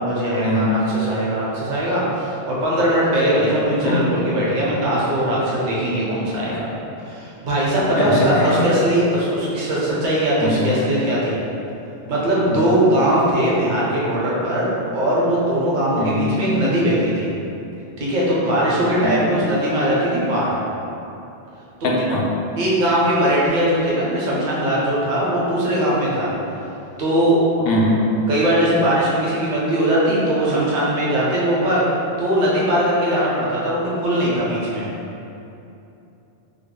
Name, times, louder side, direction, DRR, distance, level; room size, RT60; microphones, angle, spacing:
voice 1, 0.0-6.6 7.0-11.4 12.1-17.3 18.0-20.5 21.8-21.9 22.6-26.3 27.0-27.4 28.3-34.9, right 1 dB, 50° right, -7 dB, 0.8 m, -20 dB
voice 2, 8.0-8.7 10.4-10.7 12.5-12.7 16.0-16.3 19.0-19.1 21.8-22.3 27.6-28.0, left 1 dB, 65° left, -2 dB, 0.7 m, -22 dB
3.5 x 2.0 x 3.6 m, 2.9 s
omnidirectional pair, 1.1 m